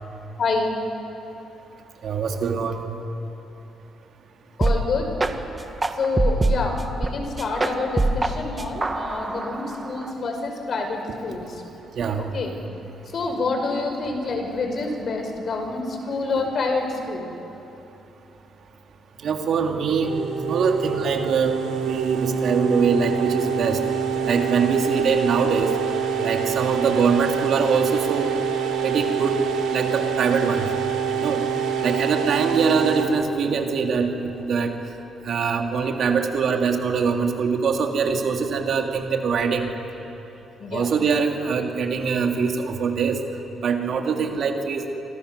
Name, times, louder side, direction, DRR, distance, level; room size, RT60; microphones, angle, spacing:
voice 1, 0.4-0.7 4.6-5.1 6.0-11.5 12.2-12.5 13.1-17.3 40.6-40.9, left 3 dB, 55° left, 4 dB, 5.2 m, -27 dB
voice 2, 2.0-2.8 11.9-12.3 19.2-20.1 20.5-23.8 24.2-25.7 26.2-28.3 28.8-29.4 29.7-30.7 31.2-31.4 31.8-34.7 35.2-39.7 40.7-43.2 43.6-45.0, right 5 dB, 65° right, 3 dB, 3.0 m, -23 dB
sound 1, 4.6-4.8 5.2-5.3 5.8-7.1 7.4-8.3 8.6-10.1, right 2 dB, 20° right, 1.9 m, -23 dB
sound 2, 20.0-33.1, right 7 dB, 85° right, 3.5 m, -26 dB
27.0 x 25.5 x 7.0 m, 3.0 s
cardioid pair, 90°, 0 cm